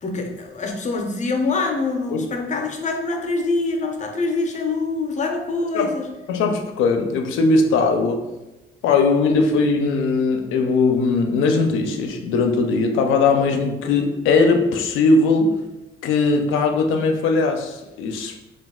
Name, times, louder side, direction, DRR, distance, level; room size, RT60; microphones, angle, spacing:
voice 1, 0.0-6.1, left 3 dB, 35° left, 3 dB, 0.5 m, -25 dB
voice 2, 6.3-8.3 8.8-15.5 16.0-18.4, left 3 dB, 85° left, 5 dB, 0.4 m, -19 dB
2.3 x 2.2 x 3.5 m, 1.0 s
cardioid pair, 90°, 20 cm